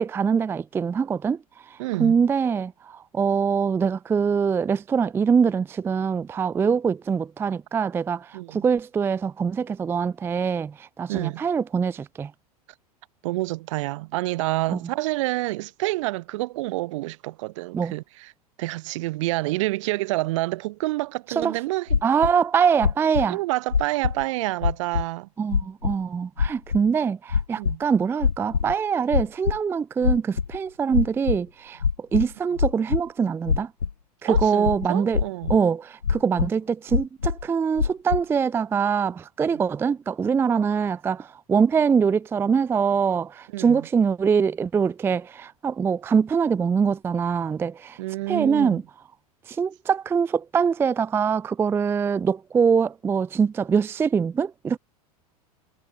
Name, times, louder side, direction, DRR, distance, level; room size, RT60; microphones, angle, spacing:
voice 1, 0.0-12.3 14.7-14.8 17.7-17.9 21.4-21.6 22.0-23.4 25.4-33.7 34.2-35.2 35.5-48.0 48.3-48.8 49.5-54.8, right 6 dB, 10° right, 0.4 m, -23 dB
voice 2, 1.8-2.1 8.3-8.6 11.1-11.4 13.2-18.3 18.6-21.9 23.3-25.3 27.6-27.8 34.2-35.5 43.5-43.9 48.0-48.8, right 20 dB, 50° right, 0.8 m, -28 dB
sound 1, 21.9-22.3 22.8-23.3 23.7-24.2 24.6-25.0 25.5-25.9 26.4-26.8 27.3-27.8 28.2-28.7 29.1-29.6 30.0-30.6 30.9-31.4 31.8-33.0 33.5-33.9 34.3-34.9 35.1-35.6 36.0-36.5 36.9-37.4 37.8-38.2, left 6 dB, 80° left, 1.1 m, -23 dB
figure-of-eight pair, 85°, 20 cm